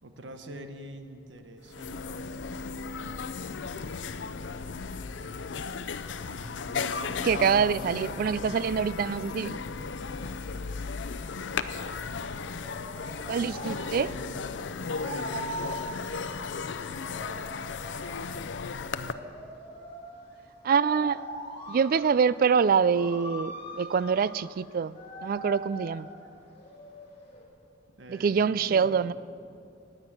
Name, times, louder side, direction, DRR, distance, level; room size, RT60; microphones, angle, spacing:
voice 1, 0.0-2.4 6.2-8.8 13.5-14.6 14.9-16.0 28.0-29.1, right 1 dB, 75° right, 7 dB, 1.1 m, -45 dB
american bar, 1.4-1.5 1.7-19.1, left 5 dB, 85° left, 0.6 m, -35 dB
voice 2, 7.2-9.6 13.3-14.1 20.6-21.2 21.7-26.1 28.1-29.1, right 6 dB, 50° right, 18 dB, 0.3 m, -25 dB
sound 1, 9.6-27.4, right 1 dB, 35° left, 3.0 m, -43 dB
19.5 x 8.9 x 6.1 m, 2.5 s
head